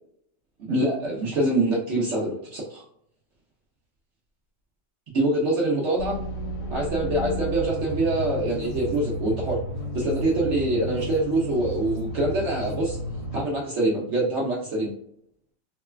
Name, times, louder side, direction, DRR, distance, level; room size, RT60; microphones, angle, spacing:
voice 1, 0.6-2.8 5.1-6.2 6.7-9.6 9.9-13.0 13.3-14.9, right 2 dB, 70° right, -4 dB, 0.7 m, -25 dB
sound 1, 6.0-13.4, equal, 70° left, 1.2 m, -32 dB
3.1 x 2.1 x 2.2 m, 0.70 s
omnidirectional pair, 1.9 m